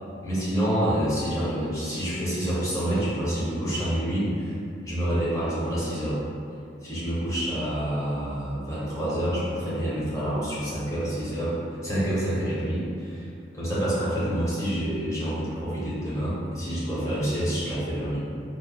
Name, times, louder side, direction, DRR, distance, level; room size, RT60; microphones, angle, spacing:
voice 1, 0.2-4.6 4.8-6.2 6.8-11.6 11.8-13.3 13.5-18.2, equal, 20° left, -10 dB, 0.8 m, -27 dB
3.3 x 2.0 x 2.3 m, 2.4 s
head